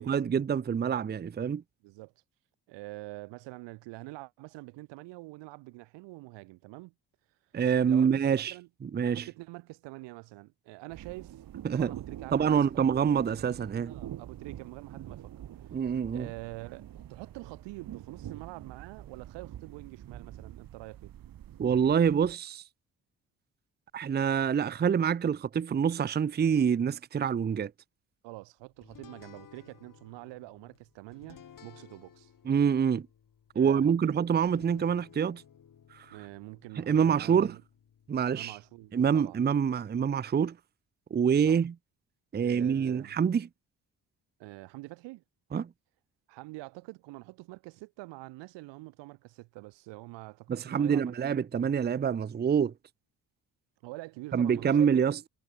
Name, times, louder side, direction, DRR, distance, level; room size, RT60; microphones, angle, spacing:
voice 1, 0.0-1.6 7.5-8.5 8.8-9.2 11.6-11.9 12.3-13.9 15.7-16.3 21.6-22.6 23.9-27.7 32.5-33.1 33.6-35.4 35.9-36.1 36.8-37.6 38.1-38.6 38.9-40.6 41.1-41.7 42.3-43.5 45.5-45.7 50.5-52.7 54.3-55.3, right 7 dB, 25° right, 0.6 m, -26 dB
voice 2, 2.7-6.9 7.8-8.7 9.0-11.4 11.7-13.0 13.9-15.7 16.1-21.1 28.2-32.3 33.5-34.2 36.1-37.6 38.3-39.7 41.5-41.6 42.4-43.2 44.4-45.2 46.3-51.1 53.8-55.0, right 22 dB, 75° right, 0.9 m, -46 dB
sound 1, 10.9-22.3, right 11 dB, 50° right, 1.0 m, -46 dB
sound 2, 28.8-39.5, left 8 dB, 45° left, 2.1 m, -57 dB
hypercardioid pair, 50°, 43 cm